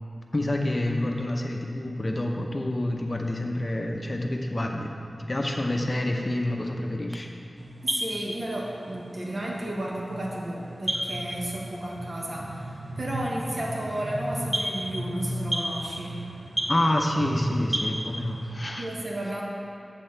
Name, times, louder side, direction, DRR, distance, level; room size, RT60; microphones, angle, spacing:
voice 1, 0.3-4.9 5.2-7.3 16.7-18.9, left 1 dB, 30° left, 1 dB, 0.8 m, -28 dB
sound 1, 7.6-18.5, equal, 25° right, 0.8 m, -33 dB
voice 2, 7.8-16.3 18.8-19.4, right 1 dB, 45° right, -3 dB, 1.4 m, -33 dB
7.7 x 4.3 x 6.5 m, 2.8 s
wide cardioid pair, 95°, 0 cm